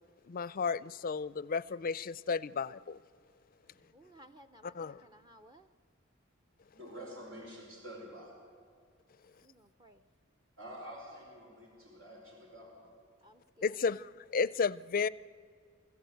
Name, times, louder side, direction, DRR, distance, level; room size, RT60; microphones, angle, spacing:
voice 1, 0.3-3.0 4.6-5.0 13.6-15.1, left 5 dB, 45° left, 19 dB, 0.4 m, -33 dB
voice 2, 3.9-5.7 9.4-10.0 13.2-13.9, equal, 20° right, 6 dB, 0.6 m, -58 dB
voice 3, 6.7-8.5 10.6-12.9, equal, 80° right, -1 dB, 5.0 m, -48 dB
24.0 x 14.5 x 7.9 m, 2.1 s
head